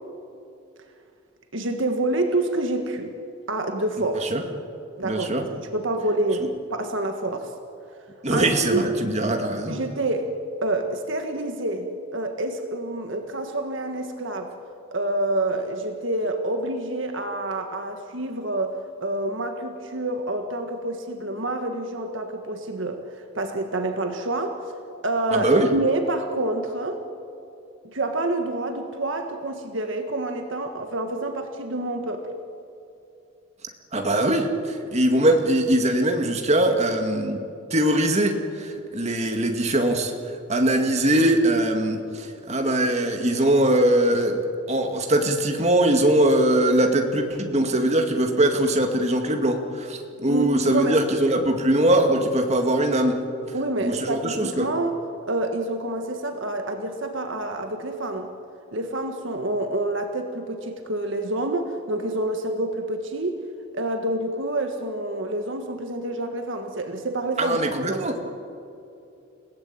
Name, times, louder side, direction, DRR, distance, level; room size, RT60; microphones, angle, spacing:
voice 1, 1.5-3.1 3.5-4.3 5.0-7.5 8.3-8.9 9.7-10.3 10.6-14.5 14.9-18.7 19.0-24.6 25.0-27.0 27.8-32.2 50.3-51.0 53.5-54.9 55.3-58.3 58.7-63.4 63.7-68.3, right 2 dB, 60° right, 5 dB, 1.6 m, -27 dB
voice 2, 5.0-5.4 8.2-9.8 25.3-25.7 33.9-37.4 37.7-40.1 40.5-44.4 44.7-53.3 53.8-54.7 67.4-68.2, right 1 dB, 30° right, 3 dB, 2.3 m, -21 dB
29.5 x 17.5 x 8.8 m, 2.7 s
head